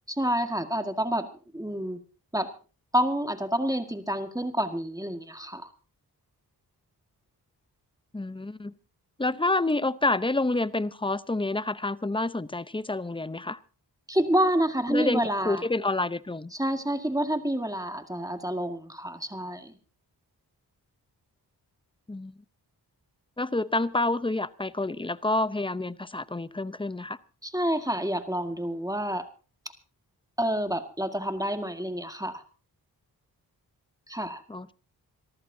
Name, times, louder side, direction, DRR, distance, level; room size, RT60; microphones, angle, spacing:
voice 1, 0.1-1.3 1.5-2.0 2.3-2.5 2.9-5.7 14.1-15.7 16.5-19.7 27.4-29.3 30.4-32.4 34.1-34.4, equal, 10° right, 1.9 m, -28 dB
voice 2, 8.1-8.7 9.2-13.6 14.9-16.5 22.1-22.3 23.4-27.2 34.5-34.7, left 2 dB, 15° left, 0.8 m, -28 dB
27.0 x 14.0 x 2.8 m
cardioid pair, 50°, 40 cm